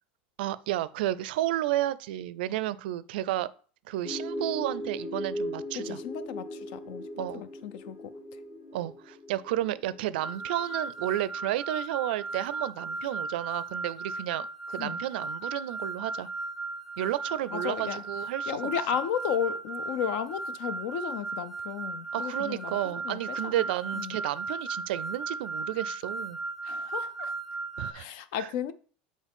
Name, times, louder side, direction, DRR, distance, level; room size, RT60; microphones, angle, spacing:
voice 1, 0.4-3.5 3.9-6.0 7.2-7.4 8.7-16.3 17.0-18.7 22.1-26.4 27.8-28.1 28.4-28.5, right 14 dB, 80° right, 0.4 m, -32 dB
sound 1, 4.0-11.7, equal, 50° left, 2.2 m, -39 dB
voice 2, 5.7-8.1 14.8-15.0 17.5-18.0 18.5-23.6 24.0-24.2 26.6-27.3 27.9-28.7, left 9 dB, 65° left, 0.6 m, -34 dB
sound 2, 10.2-27.9, right 3 dB, 5° right, 0.4 m, -36 dB
7.2 x 4.2 x 3.6 m
supercardioid pair, 125°, 5 cm